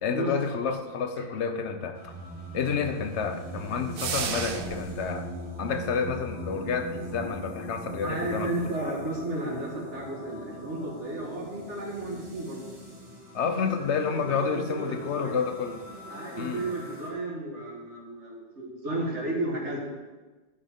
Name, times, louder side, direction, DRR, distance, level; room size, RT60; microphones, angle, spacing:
voice 1, 0.0-2.1 2.5-5.3 5.6-8.5 8.8-8.9 13.3-15.8 16.4-16.6, left 6 dB, 75° left, 8 dB, 1.0 m, -30 dB
sound 1, 1.9-17.1, right 1 dB, 25° right, 1.9 m, -41 dB
sound 2, 4.0-5.0, right 7 dB, 60° right, 0.7 m, -32 dB
voice 2, 8.0-12.7 13.6-13.9 14.1-15.4 16.1-19.8, right 2 dB, 90° right, -2 dB, 2.2 m, -33 dB
11.0 x 7.4 x 3.7 m, 1.2 s
omnidirectional pair, 1.2 m